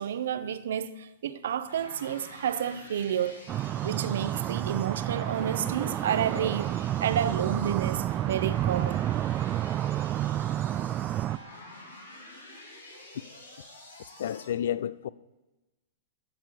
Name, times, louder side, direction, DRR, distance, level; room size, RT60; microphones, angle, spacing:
voice 1, 0.0-3.4 3.8-9.0, right 9 dB, 65° right, 0.7 m, -30 dB
sound 1, 1.7-14.5, left 1 dB, 85° left, 2.3 m, -48 dB
sound 2, 3.5-11.4, right 12 dB, 30° right, 0.3 m, -30 dB
voice 2, 14.2-15.1, left 10 dB, 65° left, 0.4 m, -30 dB
16.0 x 6.8 x 4.4 m
figure-of-eight pair, 105°, 0 cm